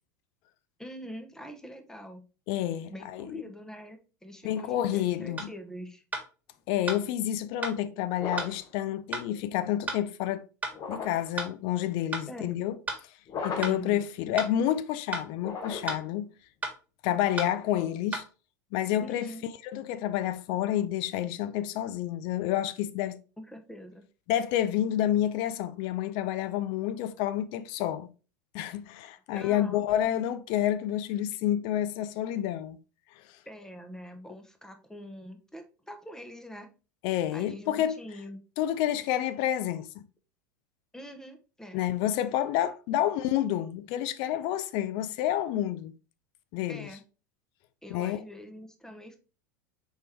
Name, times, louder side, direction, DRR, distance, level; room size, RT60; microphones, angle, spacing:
voice 1, 0.8-2.3 2.9-6.0 12.3-12.5 13.6-14.1 19.0-19.5 23.4-24.0 29.3-29.8 33.4-36.7 37.3-38.4 40.9-41.8 46.7-47.0 47.8-49.2, equal, 5° left, 0.9 m, -44 dB
voice 2, 2.5-3.4 4.4-5.5 6.7-10.4 10.9-12.8 13.4-16.3 17.0-18.2 18.7-19.3 19.6-23.2 24.3-28.1 28.5-32.8 37.0-38.0 38.6-40.0 41.7-45.9 46.5-46.9 47.9-48.2, left 12 dB, 55° left, 0.5 m, -29 dB
sound 1, 5.4-5.5 6.1-6.3 6.9-7.0 7.6-7.8 8.4-8.5 9.1-9.3 9.9-10.0 10.6-10.8 11.4-11.5 12.1-12.3 12.9-13.0 13.6-13.8 14.4-14.5 15.1-15.3 15.9-16.0 16.6-16.8 17.4-17.5 18.1-18.3, right 3 dB, 15° right, 1.7 m, -33 dB
sound 2, 8.2-8.7 10.7-11.4 13.3-13.9 15.4-16.1, left 5 dB, 40° left, 1.0 m, -37 dB
4.5 x 3.3 x 3.3 m
hypercardioid pair, 95°, 10 cm